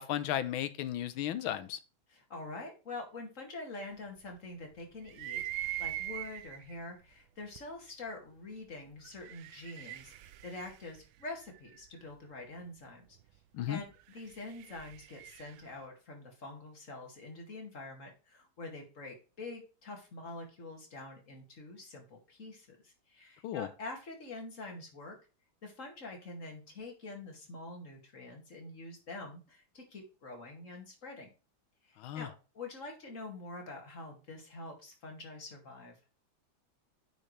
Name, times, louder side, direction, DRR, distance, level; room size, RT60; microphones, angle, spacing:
voice 1, 0.0-1.8 13.5-13.8 23.4-23.7 32.0-32.3, left 11 dB, 85° left, 13 dB, 1.6 m, -34 dB
voice 2, 2.1-13.0 13.7-25.2 25.6-31.3 31.8-35.9, left 2 dB, 40° left, 2 dB, 2.5 m, -46 dB
sound 1, 5.1-6.7 7.6-7.7 9.0-11.9 13.9-15.7, right 13 dB, 80° right, 1.4 m, -42 dB
9.1 x 5.7 x 3.3 m, 0.33 s
omnidirectional pair, 2.2 m